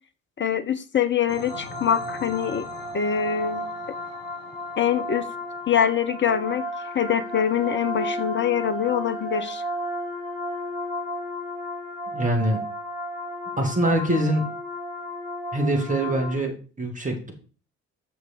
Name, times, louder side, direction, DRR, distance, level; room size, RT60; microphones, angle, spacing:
voice 1, 0.4-2.7 2.9-3.7 4.8-5.3 5.7-6.6 6.9-9.6, left 8 dB, 30° left, 9 dB, 1.1 m, -24 dB
sound 1, 1.3-16.3, equal, 90° right, 1.8 m, -33 dB
voice 2, 12.1-12.6 13.6-14.4 15.5-17.3, right 1 dB, 20° right, 2 dB, 3.2 m, -24 dB
8.7 x 6.5 x 4.7 m, 0.36 s
figure-of-eight pair, 45°, 40 cm